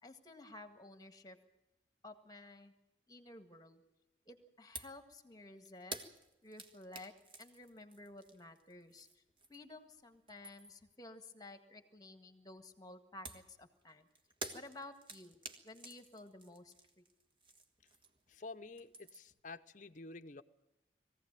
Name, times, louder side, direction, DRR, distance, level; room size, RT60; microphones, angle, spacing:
voice 1, 0.0-1.4 2.0-2.7 3.1-3.8 4.2-6.0 6.4-9.2 9.5-14.1 14.5-17.0, left 2 dB, 20° left, 8 dB, 1.7 m, -54 dB
sound 1, 4.7-5.0 5.3-9.8 10.1-10.9 13.2-18.3 18.6-19.4, right 3 dB, 30° right, 1.6 m, -51 dB
voice 2, 18.3-20.4, left 3 dB, 45° left, 10 dB, 0.7 m, -50 dB
21.5 x 16.0 x 9.0 m, 0.96 s
head